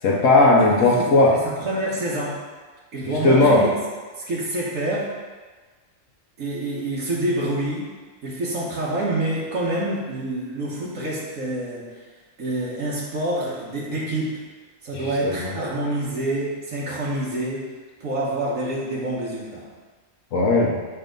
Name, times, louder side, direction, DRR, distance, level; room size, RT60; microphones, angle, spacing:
voice 1, 0.0-1.3 3.2-3.7 14.9-15.5 20.3-20.7, left 2 dB, 80° left, -4 dB, 1.2 m, -17 dB
voice 2, 1.3-2.3 2.9-3.8 4.2-5.1 6.4-7.9 8.2-11.9 12.4-14.3 14.8-17.6 18.0-19.6, right 1 dB, 85° right, -6 dB, 1.5 m, -27 dB
6.8 x 3.5 x 5.2 m, 1.4 s
omnidirectional pair, 1.3 m